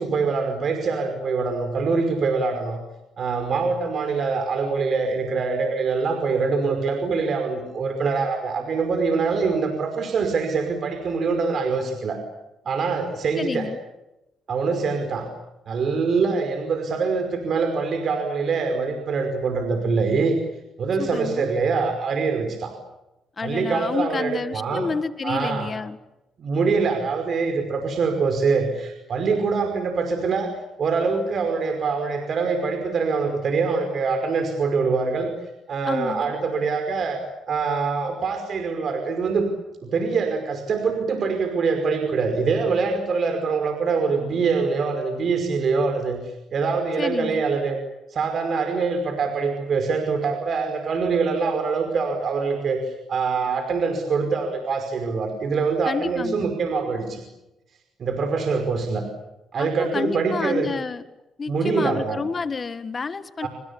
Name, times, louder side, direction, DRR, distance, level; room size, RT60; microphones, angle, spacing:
voice 1, 0.0-2.8 3.2-12.2 12.7-13.7 14.5-15.3 15.7-20.4 20.8-22.7 23.4-24.9 25.2-25.7 26.4-30.5 30.8-35.3 35.7-37.2 37.5-39.5 39.8-47.8 48.1-57.2 58.0-59.0 59.5-60.7 61.5-62.2 63.4-63.5, right 4 dB, 55° right, 6 dB, 5.3 m, -24 dB
voice 2, 13.4-13.8 21.0-21.5 23.4-26.0 35.9-36.3 47.0-47.4 55.8-56.5 59.6-61.0 61.4-63.5, left 5 dB, 35° left, 12 dB, 1.7 m, -29 dB
28.0 x 26.5 x 7.1 m, 0.93 s
cardioid pair, 90°, 0 cm